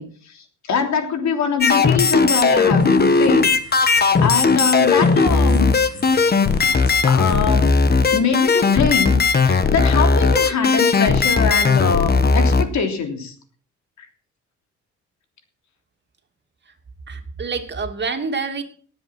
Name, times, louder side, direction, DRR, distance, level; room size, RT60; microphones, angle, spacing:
voice 1, 0.0-5.7 6.6-7.8 8.1-13.3 14.0-14.1, left 6 dB, 65° left, 6 dB, 3.4 m, -23 dB
sound 1, 1.6-12.6, left 4 dB, 30° left, 1.4 m, -17 dB
sound 2, 2.8-9.1, left 2 dB, 50° left, 6.3 m, -45 dB
voice 2, 17.1-18.6, right 4 dB, 35° right, 5 dB, 2.7 m, -27 dB
18.5 x 8.1 x 6.0 m, 0.43 s
cardioid pair, 90°, 30 cm